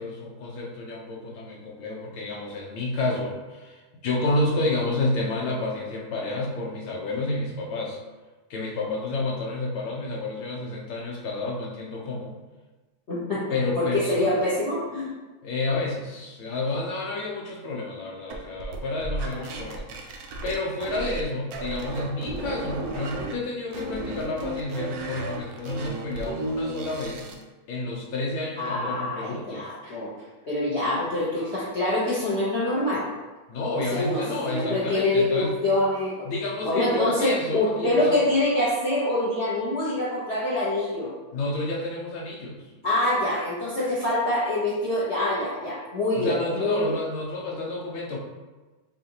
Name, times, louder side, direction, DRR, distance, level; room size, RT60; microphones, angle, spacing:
voice 1, 0.0-8.0 8.5-12.4 13.5-14.4 15.4-27.4 27.7-29.7 33.5-35.6 36.2-38.2 41.3-42.7 46.1-48.2, left 2 dB, 80° left, -2 dB, 1.7 m, -30 dB
voice 2, 13.1-13.5 13.8-15.1 19.3-19.4 28.6-30.1 30.4-33.1 33.9-34.2 34.5-36.1 36.6-41.1 42.8-46.9, left 1 dB, 45° left, -9 dB, 1.0 m, -25 dB
sound 1, 18.3-21.2 21.5-23.3 23.7-27.4, right 2 dB, 75° right, 0.8 m, -33 dB
6.5 x 2.6 x 2.9 m, 1.2 s
omnidirectional pair, 2.3 m